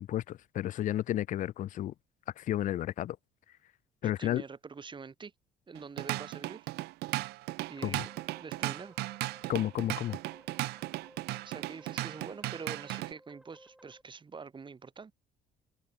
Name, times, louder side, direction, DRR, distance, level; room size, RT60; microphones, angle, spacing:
voice 1, 0.0-1.9 2.4-3.2 4.0-4.4 7.8-8.0 9.5-10.2, left 12 dB, 50° left, 0.4 m, -32 dB
voice 2, 4.0-5.3 5.7-6.7 7.7-8.1 8.4-9.0 11.4-15.1, right 5 dB, 30° right, 3.4 m, -45 dB
Drum kit / Drum, 5.7-13.1, right 19 dB, 75° right, 0.4 m, -36 dB
sound 1, 7.8-14.0, right 1 dB, 5° right, 2.0 m, -58 dB
open air
cardioid pair, 110°, 17 cm